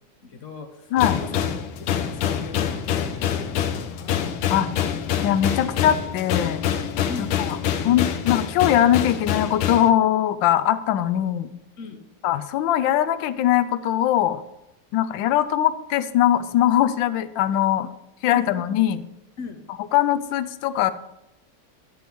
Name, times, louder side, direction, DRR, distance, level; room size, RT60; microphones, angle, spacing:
voice 1, 0.2-1.4 1.8-4.2 7.1-7.4 11.8-12.0 18.3-18.5 19.4-19.6, left 4 dB, 55° left, 5 dB, 0.8 m, -38 dB
sound 1, 1.0-9.9, left 9 dB, 90° left, 1.7 m, -26 dB
voice 2, 5.2-6.6 7.2-7.6 7.8-11.5 12.2-14.4 14.9-17.9 18.2-19.0 19.9-20.9, left 11 dB, 75° left, 12 dB, 1.1 m, -21 dB
11.0 x 7.6 x 3.5 m, 0.90 s
omnidirectional pair, 2.4 m